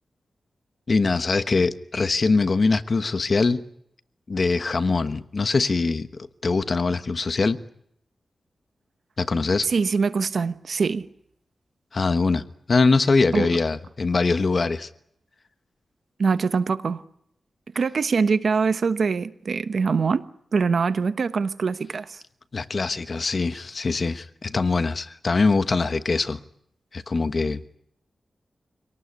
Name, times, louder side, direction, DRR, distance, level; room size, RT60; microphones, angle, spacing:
voice 1, 0.9-3.6 4.3-7.6 9.2-9.7 11.9-12.4 12.7-14.9 22.5-26.4 26.9-27.6, left 3 dB, 45° left, 1.2 m, -22 dB
voice 2, 9.6-11.1 13.3-13.5 16.2-17.0 17.7-20.3 20.5-22.2, right 5 dB, 65° right, 1.1 m, -23 dB
26.0 x 18.5 x 9.6 m
wide cardioid pair, 100°, 0 cm